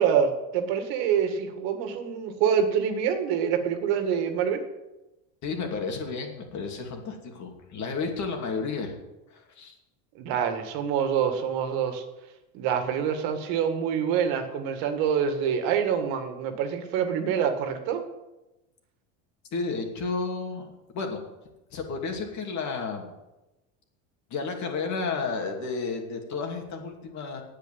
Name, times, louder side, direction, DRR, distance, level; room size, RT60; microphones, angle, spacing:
voice 1, 0.0-4.6 10.2-12.0 12.5-18.0, right 7 dB, 65° right, 7 dB, 2.0 m, -26 dB
voice 2, 5.4-9.0 9.3-9.7 19.5-21.2 21.7-23.1 24.3-27.4, left 4 dB, 45° left, 3 dB, 2.7 m, -32 dB
9.0 x 8.4 x 9.0 m, 1.0 s
supercardioid pair, 125°, 40 cm